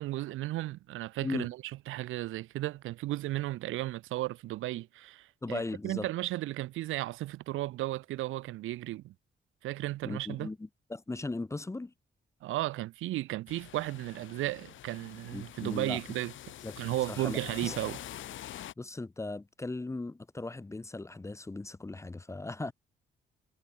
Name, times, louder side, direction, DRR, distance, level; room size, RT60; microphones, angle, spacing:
voice 1, 0.0-1.6 1.9-9.1 9.6-10.5 12.4-16.3 16.8-18.0, right 16 dB, 85° right, 1.2 m, -34 dB
voice 2, 5.4-6.1 10.0-11.9 15.3-16.0 16.6-16.7 17.1-17.8 18.8-22.7, left 2 dB, 15° left, 0.8 m, -38 dB
sound 1, 13.5-18.7, left 12 dB, 75° left, 4.2 m, -46 dB
cardioid pair, 90°, 20 cm